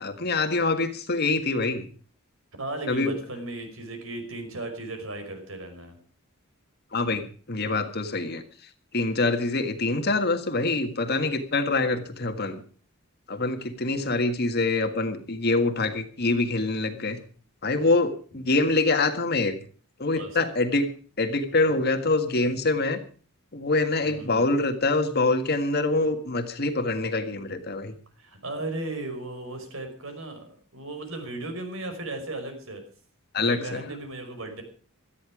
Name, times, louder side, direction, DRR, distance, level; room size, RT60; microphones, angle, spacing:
voice 1, 0.0-1.8 2.9-3.1 6.9-8.4 8.9-12.6 13.3-17.2 17.6-19.6 20.0-20.9 21.2-23.0 23.5-27.9 33.3-33.6, left 3 dB, 50° left, 7 dB, 1.7 m, -25 dB
voice 2, 2.6-6.0 18.3-18.4 20.2-20.5 24.0-24.5 28.2-32.8 33.4-34.6, right 2 dB, 65° right, 6 dB, 5.5 m, -36 dB
18.0 x 13.0 x 4.9 m, 0.42 s
head